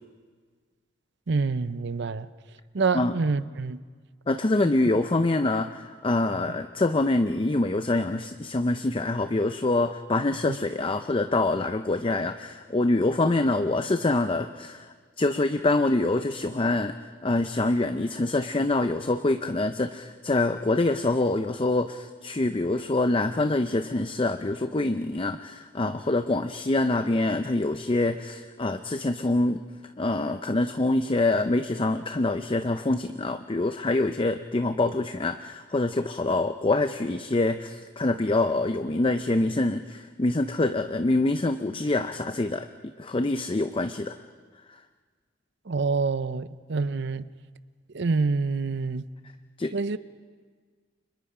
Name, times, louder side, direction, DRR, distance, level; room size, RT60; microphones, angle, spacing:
voice 1, 1.3-2.3 2.7-3.8 6.5-6.6 10.5-10.6 45.7-47.3 47.9-49.0 49.7-50.0, right 4 dB, 65° right, 0.7 m, -27 dB
voice 2, 4.3-14.9 15.2-16.9 17.2-29.6 30.0-44.1 49.6-49.7, left 2 dB, 30° left, 0.6 m, -25 dB
30.0 x 25.5 x 4.9 m
head